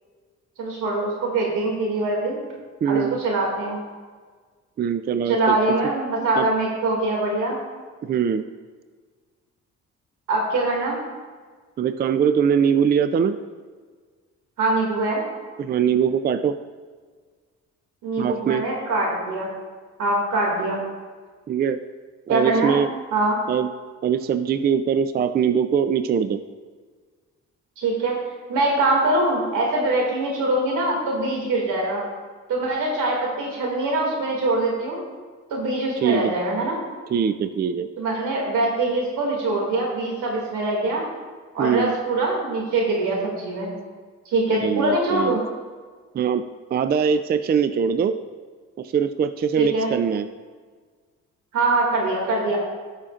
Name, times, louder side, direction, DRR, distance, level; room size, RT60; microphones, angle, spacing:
voice 1, 0.6-2.4 2.9-3.8 5.3-7.6 10.3-11.0 14.6-15.2 18.0-19.5 20.0-20.9 22.3-22.8 23.1-23.4 27.8-28.2 28.5-32.0 32.5-35.0 35.5-36.8 38.0-41.1 41.5-43.7 44.3-45.4 49.6-49.9 51.5-52.6, right 2 dB, 85° right, -1 dB, 2.3 m, -23 dB
voice 2, 2.8-3.2 4.8-5.6 6.4-6.5 8.0-8.4 11.8-13.4 15.6-16.6 18.2-18.6 21.5-21.8 22.3-22.9 23.5-23.7 24.0-26.4 36.0-36.3 37.1-37.9 41.6-41.9 44.6-45.4 46.1-46.4 46.7-48.2 48.8-50.3, right 7 dB, 35° right, 11 dB, 0.4 m, -22 dB
13.5 x 5.7 x 2.5 m, 1.5 s
cardioid pair, 90°, 30 cm